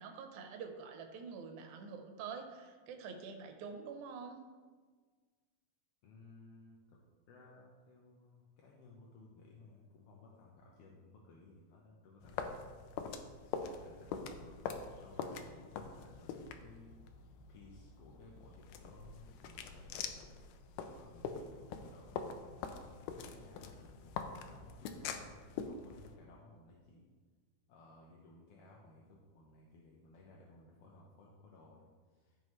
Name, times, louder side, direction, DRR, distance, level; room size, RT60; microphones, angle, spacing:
voice 1, 0.0-4.4, right 5 dB, 80° right, 4 dB, 2.3 m, -46 dB
voice 2, 6.0-7.0 7.3-12.7 13.6-17.0 17.2-20.5 20.8-22.7 23.2-27.1 27.7-32.4, left 2 dB, 65° left, -3 dB, 1.7 m, -59 dB
sound 1, 12.2-26.1, left 6 dB, 90° left, 2.2 m, -44 dB
15.0 x 5.5 x 3.2 m, 1.5 s
omnidirectional pair, 3.5 m